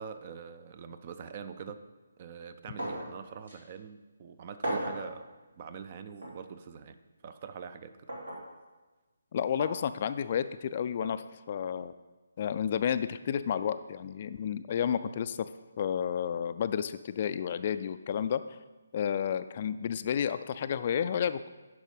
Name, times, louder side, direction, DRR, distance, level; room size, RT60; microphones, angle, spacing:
voice 1, 0.0-1.8 2.2-5.3 5.6-7.0 7.2-8.1, right 6 dB, 35° right, 11 dB, 0.5 m, -44 dB
sound 1, 2.8-3.1 3.5-3.6 4.6-5.1 6.2-6.4 8.1-8.4 9.6-9.8 11.0-11.2, right 1 dB, 70° right, 2.7 m, -35 dB
voice 2, 9.3-11.9 12.4-15.5 15.8-18.4 18.9-21.5, left 8 dB, 40° left, 12 dB, 0.3 m, -31 dB
10.5 x 5.5 x 5.0 m, 1.2 s
figure-of-eight pair, 145°, 0 cm